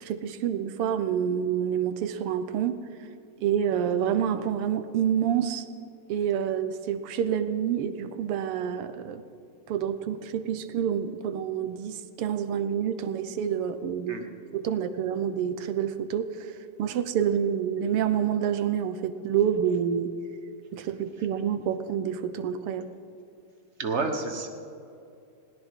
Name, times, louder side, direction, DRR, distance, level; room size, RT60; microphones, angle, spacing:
voice 1, 0.0-2.8 3.4-5.7 6.1-9.2 9.7-14.2 14.5-20.1 20.7-22.9, right 8 dB, 90° right, 10 dB, 1.8 m, -28 dB
voice 2, 23.8-24.5, right 3 dB, 35° right, 4 dB, 1.4 m, -29 dB
20.0 x 18.0 x 3.7 m, 2.6 s
omnidirectional pair, 2.4 m